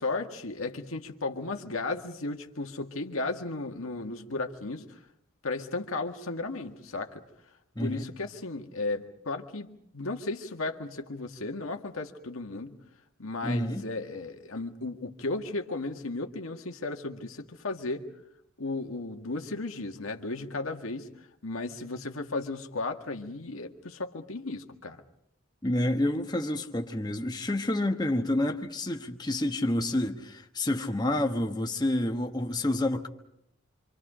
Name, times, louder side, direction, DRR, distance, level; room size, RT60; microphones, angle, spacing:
voice 1, 0.0-5.0 5.4-7.2 7.8-12.8 13.2-18.1 18.6-21.1 21.4-25.0, left 3 dB, 90° left, 1.8 m, -35 dB
voice 2, 7.7-8.1 13.4-13.9 25.6-33.1, left 1 dB, 20° left, 1.2 m, -28 dB
26.5 x 26.0 x 5.1 m
head